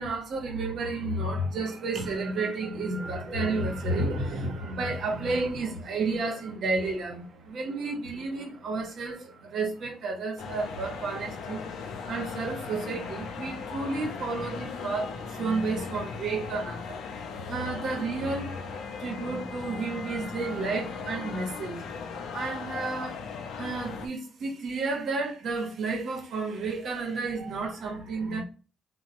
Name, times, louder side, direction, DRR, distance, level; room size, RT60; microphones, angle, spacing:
voice 1, 0.0-22.0 22.3-23.2 23.6-28.4, right 3 dB, 65° right, 1.0 m, -31 dB
sound 1, 10.4-24.1, left 5 dB, 85° left, 0.5 m, -38 dB
2.9 x 2.2 x 2.6 m
cardioid pair, 90°, 0 cm